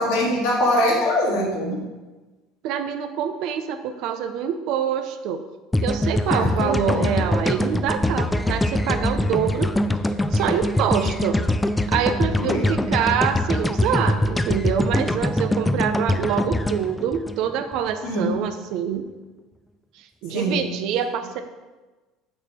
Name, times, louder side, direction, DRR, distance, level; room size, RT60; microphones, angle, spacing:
voice 1, 0.0-1.8 6.3-7.0 12.4-12.9 18.0-18.4 20.3-20.6, left 1 dB, 75° left, -4 dB, 2.6 m, -23 dB
voice 2, 2.6-5.4 5.8-9.7 10.3-11.4 11.9-19.0 20.0-21.4, right 8 dB, 65° right, 8 dB, 0.8 m, -25 dB
sound 1, 5.7-17.9, left 1 dB, 10° left, 0.4 m, -23 dB
6.4 x 6.2 x 4.5 m, 1.2 s
supercardioid pair, 105°, 0 cm